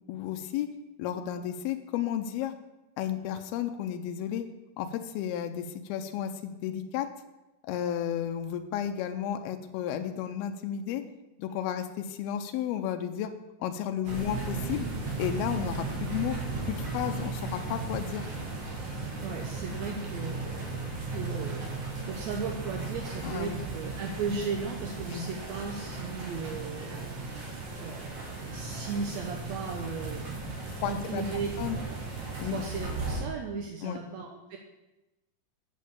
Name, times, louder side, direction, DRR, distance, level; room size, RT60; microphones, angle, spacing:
voice 1, 0.1-0.7 1.0-2.5 3.0-4.5 4.8-7.1 7.6-11.0 11.4-13.3 13.6-14.9 15.2-16.4 16.7-18.2 23.2-23.6 25.1-25.3 30.7-31.2 31.6-31.8 32.4-32.6 33.8-34.0, left 10 dB, 85° left, 6 dB, 2.6 m, -33 dB
sound 1, 14.0-33.2, right 3 dB, 45° right, 3.2 m, -36 dB
voice 2, 19.2-21.6 22.0-27.5 27.8-31.5 32.4-34.6, right 5 dB, 80° right, 2 dB, 1.5 m, -36 dB
8.3 x 6.5 x 8.3 m, 1.0 s
omnidirectional pair, 4.3 m